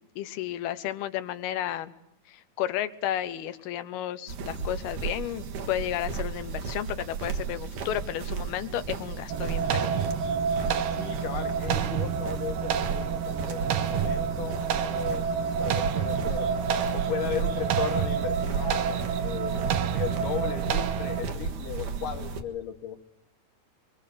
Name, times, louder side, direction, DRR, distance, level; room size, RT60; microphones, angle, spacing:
voice 1, 0.2-1.9 2.3-9.9, left 12 dB, 80° left, 12 dB, 3.0 m, -32 dB
sound 1, 4.3-22.4, right 5 dB, 60° right, 3.0 m, -34 dB
sound 2, 9.3-21.2, right 7 dB, 90° right, 3.2 m, -28 dB
voice 2, 10.9-15.3 15.6-16.5 16.9-23.0, left 9 dB, 65° left, 7 dB, 3.0 m, -36 dB
24.5 x 23.5 x 6.8 m, 0.83 s
omnidirectional pair, 4.4 m